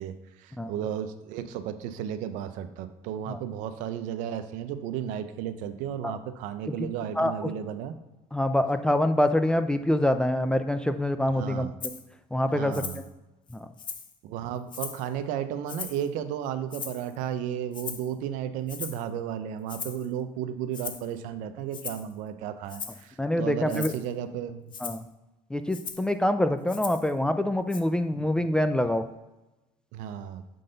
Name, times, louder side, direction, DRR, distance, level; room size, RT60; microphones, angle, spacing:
voice 1, 0.0-8.0 11.3-11.7 12.5-13.0 14.2-24.7 28.1-28.3 29.9-30.4, right 9 dB, 80° right, 10 dB, 0.6 m, -34 dB
voice 2, 8.3-11.7 12.3-12.8 13.5-13.7 23.2-23.9 24.8-25.1 25.5-29.1, left 1 dB, 5° left, 9 dB, 0.3 m, -25 dB
Rattle (instrument), 11.8-12.0 12.7-13.1 13.5-14.2 14.7-15.1 15.7-16.1 16.7-17.2 17.7-18.1 18.7-19.1 19.7-20.1 20.7-21.1 21.7-22.1 22.7-23.0 23.7-24.1 24.7-25.0 25.7-26.1 26.7-27.1 27.7-27.8, left 6 dB, 35° left, 0.7 m, -38 dB
7.6 x 3.9 x 3.9 m, 1.0 s
cardioid pair, 115°, 13 cm